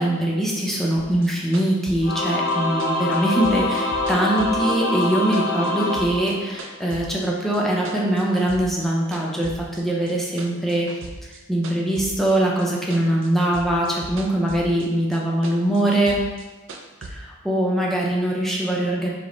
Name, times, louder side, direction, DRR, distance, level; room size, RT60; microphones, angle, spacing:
voice 1, 0.0-10.9 11.2-16.2 17.1-19.1, right 1 dB, ahead, -3 dB, 0.5 m, -22 dB
sound 1, 1.0-5.1 5.3-7.3 7.5-8.9 9.1-12.7 12.9-14.9 15.1-17.1, right 2 dB, 60° right, 0.4 m, -38 dB
Singing / Musical instrument, 2.0-6.9, left 2 dB, 55° left, 0.7 m, -24 dB
5.0 x 2.1 x 3.8 m, 1.2 s
head